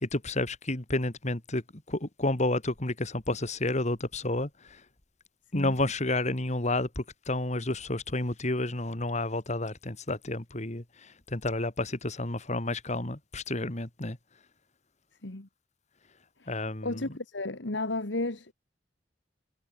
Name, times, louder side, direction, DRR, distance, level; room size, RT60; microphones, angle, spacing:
voice 1, 0.0-1.6 1.9-4.5 5.5-10.8 11.3-14.2 16.5-17.0, left 2 dB, 40° left, 2.6 m, -30 dB
voice 2, 16.8-18.5, left 2 dB, 85° left, 2.0 m, -33 dB
head